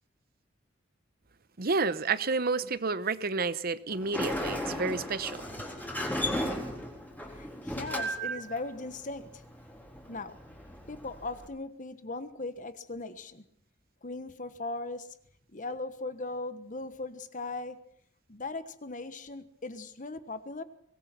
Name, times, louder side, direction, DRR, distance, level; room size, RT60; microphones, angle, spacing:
voice 1, 1.6-5.4, right 4 dB, 50° right, 0.9 m, -30 dB
Sliding door, 3.9-11.5, equal, 10° left, 4.1 m, -36 dB
voice 2, 7.3-9.4 10.1-10.4 10.9-13.4 14.0-15.1 15.5-17.8 18.3-20.6, left 3 dB, 45° left, 1.4 m, -38 dB
23.5 x 19.5 x 6.1 m
head